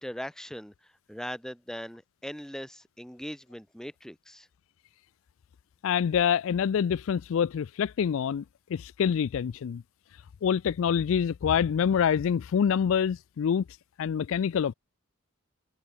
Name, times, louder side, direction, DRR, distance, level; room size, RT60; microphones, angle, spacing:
voice 1, 0.0-4.5, equal, 5° left, 1.3 m, -40 dB
voice 2, 5.8-8.4 8.7-9.8 10.4-13.6 14.0-14.7, left 7 dB, 65° left, 0.3 m, -26 dB
head